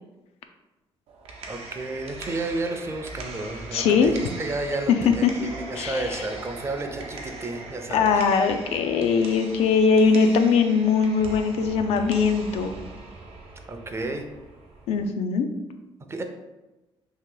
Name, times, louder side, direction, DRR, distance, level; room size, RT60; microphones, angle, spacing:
sound 1, 1.1-15.1, right 2 dB, 75° right, 0.6 m, -40 dB
voice 1, 1.5-8.2 13.7-14.3 16.1-16.2, right 2 dB, 25° right, 5 dB, 0.5 m, -32 dB
voice 2, 3.7-4.1 4.9-5.3 5.8-6.1 7.9-12.7 14.9-15.5, left 5 dB, 85° left, 7 dB, 0.4 m, -21 dB
2.9 x 2.8 x 3.7 m, 1.1 s
cardioid pair, 105°, 10 cm